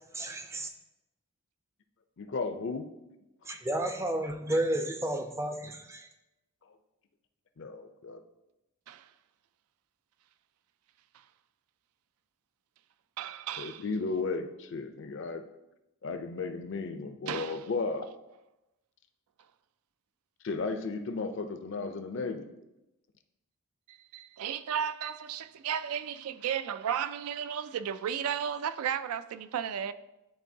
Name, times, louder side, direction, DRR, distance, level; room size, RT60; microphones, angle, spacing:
voice 1, 0.1-0.7 3.4-6.1, right 1 dB, 15° right, 0.4 m, -32 dB
voice 2, 2.2-2.9 7.6-8.2 13.6-15.4 16.0-18.1 20.4-22.5, left 4 dB, 55° left, 0.5 m, -34 dB
voice 3, 13.2-13.8 17.3-17.7 23.9-29.9, right 8 dB, 80° right, 0.3 m, -34 dB
10.5 x 3.7 x 2.7 m
head